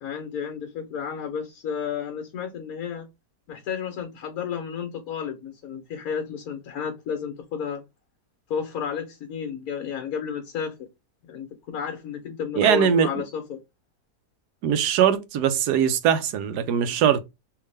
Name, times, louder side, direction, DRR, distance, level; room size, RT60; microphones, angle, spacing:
voice 1, 0.0-3.1 3.5-7.8 8.5-10.7 11.3-13.6, left 7 dB, 65° left, 1.3 m, -32 dB
voice 2, 12.6-13.1 14.6-17.2, right 8 dB, 80° right, 1.2 m, -21 dB
3.5 x 2.8 x 3.2 m
omnidirectional pair, 1.7 m